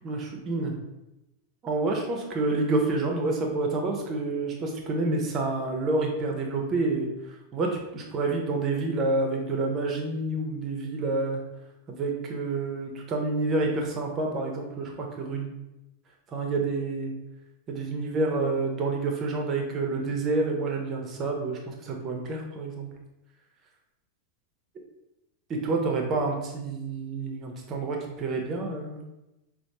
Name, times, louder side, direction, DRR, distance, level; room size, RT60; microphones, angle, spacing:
voice 1, 0.0-0.7 1.6-11.4 11.9-15.5 16.3-17.1 17.7-22.9 25.5-29.0, right 3 dB, 30° right, 1 dB, 0.7 m, -28 dB
5.1 x 2.1 x 2.9 m, 0.95 s
figure-of-eight pair, 90°, 0 cm